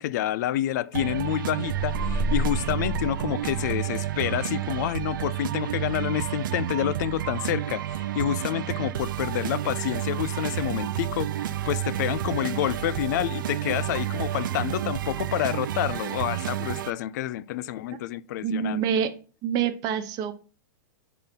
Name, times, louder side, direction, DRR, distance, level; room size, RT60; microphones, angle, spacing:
voice 1, 0.0-18.8, left 13 dB, 60° left, 0.4 m, -28 dB
sound 1, 0.9-16.9, right 12 dB, 75° right, 0.5 m, -30 dB
sound 2, 1.7-4.1, equal, 5° left, 0.6 m, -31 dB
voice 2, 18.4-19.1 19.4-20.3, right 8 dB, 35° right, 1.0 m, -26 dB
5.6 x 4.2 x 5.2 m
hypercardioid pair, 135°, 11 cm